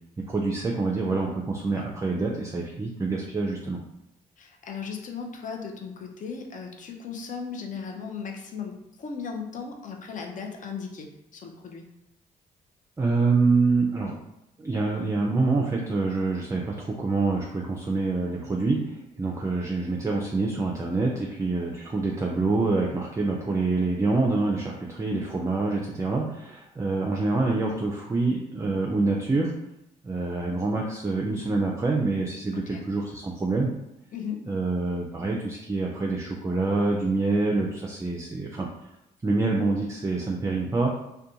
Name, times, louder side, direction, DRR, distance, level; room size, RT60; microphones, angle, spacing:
voice 1, 0.3-3.8 13.0-14.2 14.6-29.5 30.0-33.7 34.5-38.7 39.2-40.9, right 3 dB, 20° right, 0 dB, 0.4 m, -26 dB
voice 2, 4.4-11.8 32.5-32.9 34.1-34.4, left 6 dB, 50° left, 3 dB, 0.5 m, -37 dB
2.5 x 2.2 x 2.8 m, 0.85 s
supercardioid pair, 65°, 17 cm